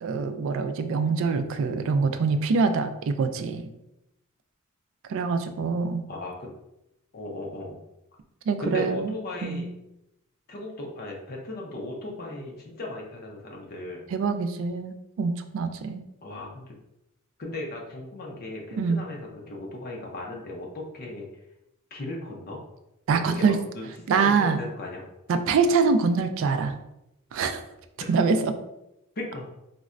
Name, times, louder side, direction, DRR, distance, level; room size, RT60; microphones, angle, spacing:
voice 1, 0.0-3.6 5.1-6.0 8.5-9.1 9.4-9.6 14.1-16.0 18.8-19.0 23.1-23.6 24.1-24.6 25.3-26.8 27.3-27.6 28.1-28.5, right 4 dB, 65° right, 8 dB, 0.3 m, -24 dB
voice 2, 6.1-6.5 7.1-7.8 8.6-9.7 10.5-14.0 16.2-16.8 17.4-21.3 21.9-22.6 23.1-25.0 28.0-28.1 29.2-29.5, left 2 dB, 45° left, 0 dB, 0.5 m, -36 dB
3.9 x 2.1 x 2.4 m, 0.87 s
head